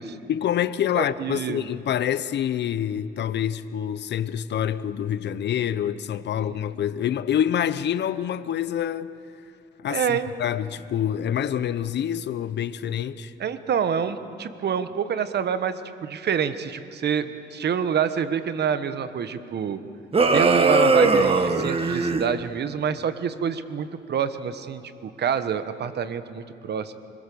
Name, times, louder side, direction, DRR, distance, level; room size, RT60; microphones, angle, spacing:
voice 1, 0.3-9.1 9.8-13.3, left 10 dB, 60° left, 0.8 m, -26 dB
voice 2, 0.9-1.7 6.4-6.5 9.9-10.3 13.4-19.8 20.3-26.9, right 7 dB, 55° right, 1.3 m, -27 dB
sound 1, 20.1-22.3, right 3 dB, 30° right, 1.4 m, -19 dB
25.5 x 21.5 x 7.0 m
cardioid pair, 90°, 20 cm